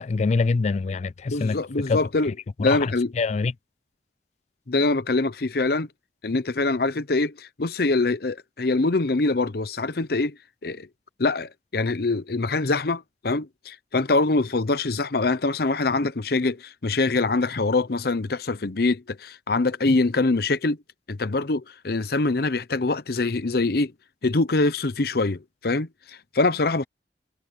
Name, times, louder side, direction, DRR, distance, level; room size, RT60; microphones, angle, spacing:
voice 1, 0.0-1.6 1.9-2.0 2.6-3.5, left 4 dB, 40° left, 0.3 m, -24 dB
voice 2, 1.3-2.3 2.6-3.1 4.7-5.9 6.2-10.4 10.6-10.9 11.2-20.8 21.1-23.9 24.2-26.8, left 3 dB, 60° left, 0.8 m, -24 dB
head